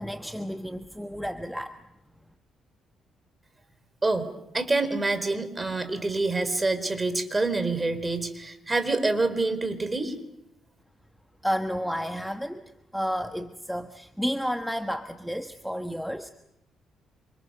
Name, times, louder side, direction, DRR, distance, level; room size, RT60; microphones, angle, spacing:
voice 1, 0.0-1.8 11.4-16.3, equal, ahead, 7 dB, 1.4 m, -31 dB
voice 2, 4.0-10.2, right 3 dB, 20° right, 10 dB, 4.4 m, -27 dB
28.0 x 27.5 x 6.8 m, 0.82 s
cardioid pair, 90°, 0 cm